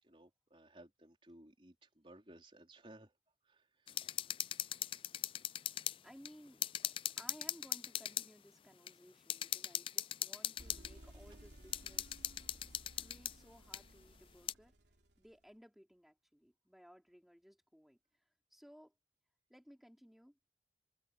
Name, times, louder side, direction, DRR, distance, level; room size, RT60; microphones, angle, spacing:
voice 1, 0.0-3.1 3.4-4.0, right 1 dB, 30° right, 3.9 m, -59 dB
sound 1, 3.9-6.0 6.3-6.4 6.6-8.3 8.9-9.0 9.3-10.9 11.7-13.3 13.7-13.8 14.5-14.6, left 11 dB, 30° left, 0.3 m, -39 dB
voice 2, 6.0-6.7 7.2-12.3 12.7-14.7 15.2-18.9 19.5-20.4, equal, ahead, 4.7 m, -60 dB
sound 2, 10.6-15.4, right 1 dB, 80° right, 3.1 m, -58 dB
open air
head